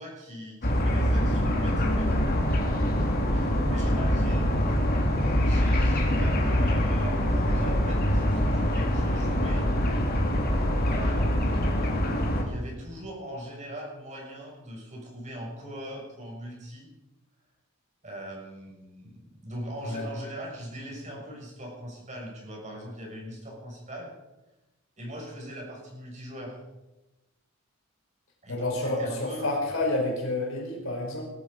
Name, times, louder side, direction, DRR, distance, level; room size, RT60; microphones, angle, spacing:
voice 1, 0.0-2.2 3.3-5.2 5.4-9.7 10.9-16.9 18.0-24.1 25.0-26.6 28.4-29.6, equal, 35° right, -1 dB, 6.4 m, -40 dB
sound 1, 0.6-12.4, equal, 45° left, 3.1 m, -24 dB
voice 2, 28.5-31.2, left 2 dB, 70° left, 0 dB, 5.1 m, -29 dB
20.0 x 13.5 x 5.2 m, 1.0 s
head